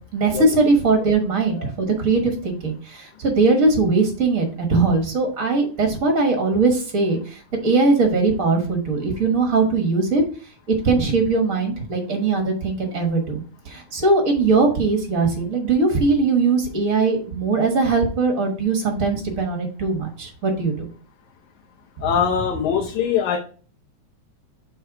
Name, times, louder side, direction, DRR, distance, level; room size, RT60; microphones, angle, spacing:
voice 1, 0.1-10.2 10.8-20.9, right 3 dB, 60° right, 3 dB, 0.8 m, -20 dB
voice 2, 22.0-23.4, left 7 dB, 80° left, 0 dB, 2.2 m, -22 dB
7.6 x 3.4 x 4.7 m, 0.40 s
omnidirectional pair, 3.4 m